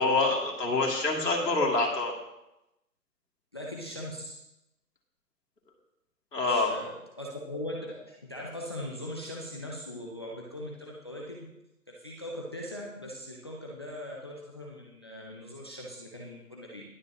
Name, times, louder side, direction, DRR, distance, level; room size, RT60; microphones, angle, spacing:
voice 1, 0.0-2.1 6.3-6.8, left 3 dB, 90° left, -1 dB, 2.8 m, -26 dB
voice 2, 3.5-4.4 6.4-11.5 11.9-16.8, left 1 dB, 15° left, -3 dB, 0.6 m, -40 dB
21.5 x 7.4 x 3.0 m, 0.91 s
figure-of-eight pair, 150°, 48 cm